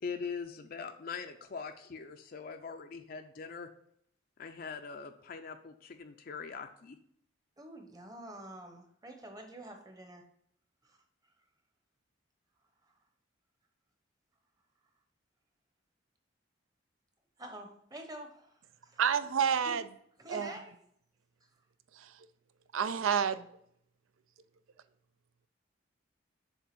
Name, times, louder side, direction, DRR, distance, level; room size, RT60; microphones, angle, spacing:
voice 1, 0.0-3.7 4.4-7.0, left 5 dB, 45° left, 0.4 m, -42 dB
voice 2, 7.6-10.2 10.8-11.0 17.4-19.1 19.6-19.8 20.2-20.8, right 1 dB, 20° right, 0.9 m, -47 dB
voice 3, 19.0-19.8 20.3-20.5 22.0-22.1 22.7-23.5, right 7 dB, 85° right, 0.5 m, -29 dB
7.3 x 3.4 x 5.9 m
head